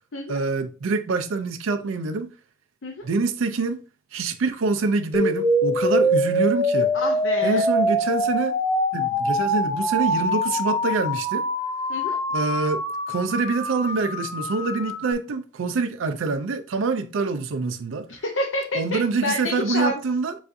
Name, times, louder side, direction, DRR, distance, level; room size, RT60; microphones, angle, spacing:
voice 1, 0.3-2.3 3.0-3.8 4.1-6.9 7.4-8.5 8.9-11.4 12.3-18.1 18.7-20.4, right 4 dB, 85° right, 0.4 m, -25 dB
sound 1, 5.1-15.1, equal, 20° left, 0.5 m, -24 dB
voice 2, 6.9-7.6 11.9-12.2 18.1-20.0, left 2 dB, 70° left, 0.7 m, -28 dB
7.0 x 2.5 x 2.6 m
head